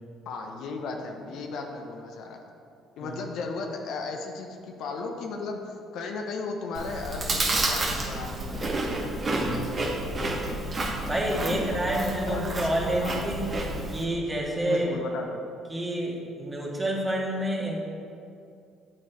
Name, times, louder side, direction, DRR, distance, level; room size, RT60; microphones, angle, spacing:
voice 1, 0.3-2.4 3.0-9.0 11.5-11.8 12.3-13.2 14.7-15.4, left 4 dB, 70° left, 3 dB, 0.8 m, -35 dB
Chewing mastication, 6.7-14.0, right 2 dB, 35° right, 1.2 m, -30 dB
sound 1, 7.5-11.7, left 1 dB, ahead, 1.4 m, -45 dB
voice 2, 9.3-9.7 11.0-13.5 13.9-15.0 15.7-17.8, right 1 dB, 20° right, -2 dB, 1.7 m, -28 dB
7.5 x 6.0 x 4.5 m, 2.5 s
supercardioid pair, 80°, 0 cm